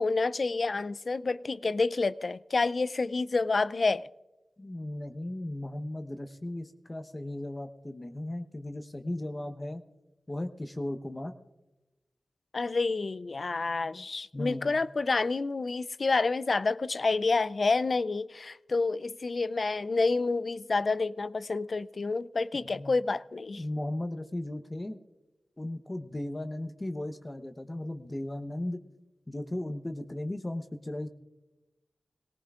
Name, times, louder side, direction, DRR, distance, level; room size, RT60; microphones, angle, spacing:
voice 1, 0.0-4.1 12.5-23.6, left 3 dB, 60° left, 0.4 m, -28 dB
voice 2, 4.6-9.8 10.3-11.3 14.3-14.8 22.5-22.9 23.6-25.0 25.6-28.8 29.3-31.1, left 1 dB, 30° left, 0.9 m, -36 dB
22.0 x 18.0 x 2.5 m
cardioid pair, 45°, 0 cm